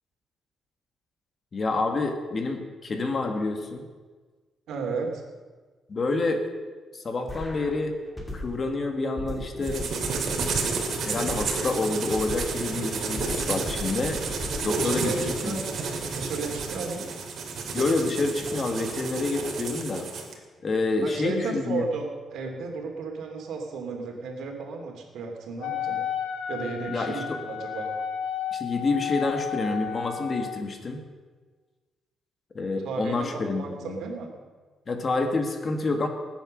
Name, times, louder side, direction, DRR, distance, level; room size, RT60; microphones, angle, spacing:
voice 1, 1.5-3.9 5.9-6.4 6.9-8.0 8.3-9.9 11.0-14.2 14.6-15.6 17.7-20.1 20.6-21.8 26.9-27.4 28.5-31.0 32.5-34.0 34.9-36.1, left 3 dB, 35° left, 5 dB, 1.9 m, -28 dB
voice 2, 4.7-5.2 14.7-17.1 21.0-26.0 26.5-28.0 32.8-34.4, right 4 dB, 80° right, 2 dB, 2.8 m, -34 dB
sound 1, 7.3-8.7 9.2-12.7 13.2-15.3, left 1 dB, 10° left, 2.5 m, -37 dB
sound 2, 9.6-20.3, right 4 dB, 55° right, 2.6 m, -31 dB
Wind instrument woodwind instrument, 25.6-30.6, left 8 dB, 80° left, 1.6 m, -32 dB
20.0 x 9.1 x 6.5 m, 1.4 s
cardioid pair, 140°, 0 cm